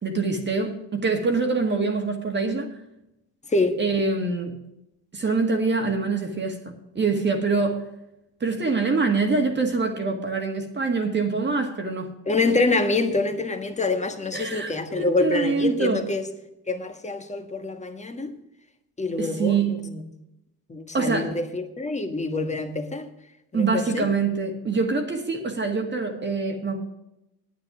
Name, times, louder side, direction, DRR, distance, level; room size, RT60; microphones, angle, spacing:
voice 1, 0.0-2.7 3.8-4.6 5.1-7.9 8.4-12.1 14.3-16.1 19.2-19.9 20.9-21.3 23.5-26.8, right 4 dB, 25° right, 1.8 m, -25 dB
voice 2, 12.3-16.2 16.7-18.3 19.0-20.0 20.7-23.1 23.5-24.1, left 3 dB, 15° left, 1.5 m, -26 dB
9.5 x 8.9 x 6.1 m
supercardioid pair, 90°, 41 cm